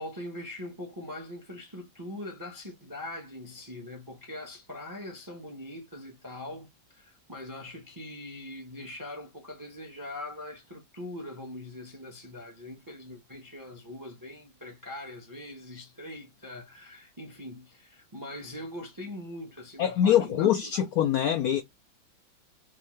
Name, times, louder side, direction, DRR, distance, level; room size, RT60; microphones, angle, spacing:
voice 1, 0.0-20.8, left 1 dB, 20° right, 0.5 m, -42 dB
voice 2, 19.8-21.6, left 10 dB, 80° left, 0.8 m, -24 dB
3.5 x 2.6 x 3.1 m
omnidirectional pair, 2.1 m